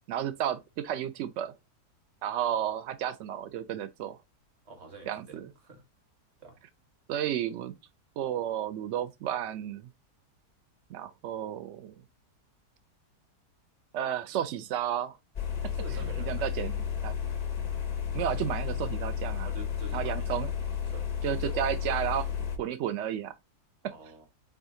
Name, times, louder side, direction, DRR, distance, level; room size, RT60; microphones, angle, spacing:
voice 1, 0.0-1.5 2.2-4.2 5.1-5.5 7.1-7.7 8.2-9.9 10.9-11.9 13.9-15.2 16.3-16.7 17.0-17.1 18.1-19.5 19.9-20.5 21.2-22.3 22.6-23.3, right 10 dB, 75° right, 0.6 m, -32 dB
voice 2, 4.6-5.8 6.4-6.6 15.7-16.6 19.4-20.3 20.9-21.8 23.9-24.3, right 2 dB, 45° right, 1.6 m, -47 dB
sound 1, 15.4-22.6, left 8 dB, 60° left, 0.4 m, -32 dB
4.8 x 3.8 x 2.6 m
omnidirectional pair, 1.8 m